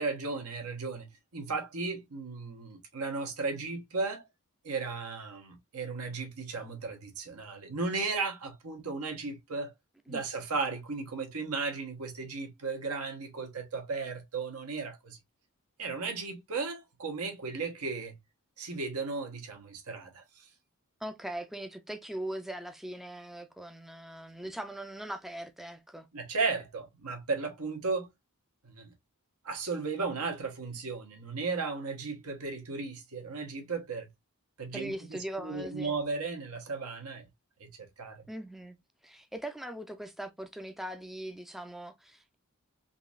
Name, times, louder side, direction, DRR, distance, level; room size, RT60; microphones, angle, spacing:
voice 1, 0.0-4.2 4.6-9.7 10.1-15.2 15.8-18.2 18.6-20.5 26.1-28.1 28.6-28.9 29.4-34.1 34.6-37.2 37.6-38.3, right 4 dB, 90° right, 1.1 m, -35 dB
voice 2, 21.0-26.1 34.7-36.0 38.3-38.8 39.0-42.4, right 1 dB, ahead, 0.4 m, -40 dB
3.8 x 2.7 x 2.3 m
head